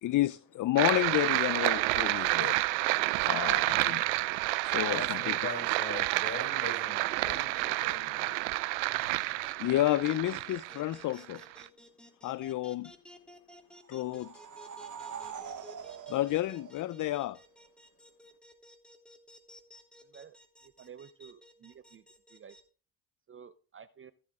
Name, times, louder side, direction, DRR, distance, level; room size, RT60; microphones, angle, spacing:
voice 1, 0.0-2.6 3.3-4.0 4.6-5.4 9.6-11.4 12.2-12.9 13.9-14.3 16.1-17.4, left 15 dB, 50° left, 0.6 m, -30 dB
sound 1, 0.8-11.7, right 21 dB, 85° right, 0.6 m, -29 dB
voice 2, 4.9-8.4, left 3 dB, 30° left, 7.1 m, -41 dB
sound 2, 9.0-22.6, left 1 dB, ahead, 3.1 m, -55 dB
sound 3, 13.8-17.4, right 7 dB, 45° right, 1.5 m, -44 dB
voice 3, 20.6-22.0 22.3-22.6 23.3-24.1, right 7 dB, 30° right, 0.7 m, -51 dB
15.0 x 7.7 x 3.7 m
supercardioid pair, 65°, 40 cm